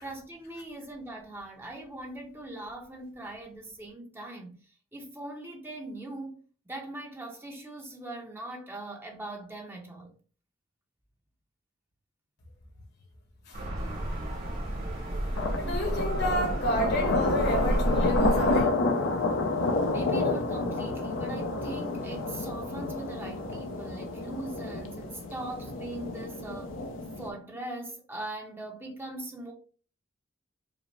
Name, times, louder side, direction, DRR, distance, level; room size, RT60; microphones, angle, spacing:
voice 1, 0.0-6.4 6.7-10.1 19.9-26.8 27.2-29.5, right 2 dB, 10° right, 0.8 m, -41 dB
sound 1, 13.5-18.6, right 1 dB, 50° right, 1.6 m, -31 dB
sound 2, 13.8-13.9 15.4-27.3, left 2 dB, 75° left, 0.7 m, -30 dB
voice 2, 15.6-18.7, equal, 55° left, 1.1 m, -30 dB
5.0 x 2.1 x 3.2 m
head